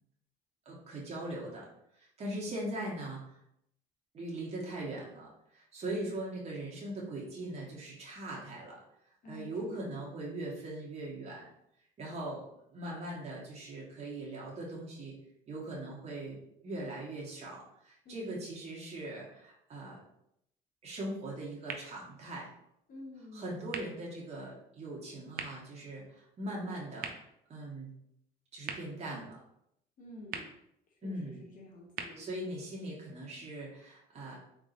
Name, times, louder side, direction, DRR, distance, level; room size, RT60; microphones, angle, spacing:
voice 1, 0.6-1.7 1.9-3.4 4.1-8.8 9.3-11.5 12.0-15.2 15.5-20.0 20.8-22.5 23.2-27.9 28.5-29.4 31.0-31.5 32.2-34.4, right 1 dB, 40° right, -4 dB, 1.2 m, -40 dB
voice 2, 9.2-10.0 18.1-18.4 22.9-23.5 30.0-30.5 31.0-32.5, left 1 dB, 55° left, -1 dB, 0.9 m, -49 dB
sound 1, 21.6-33.5, right 6 dB, 60° right, 0.5 m, -48 dB
3.8 x 3.6 x 2.5 m, 0.76 s
cardioid pair, 110°, 17 cm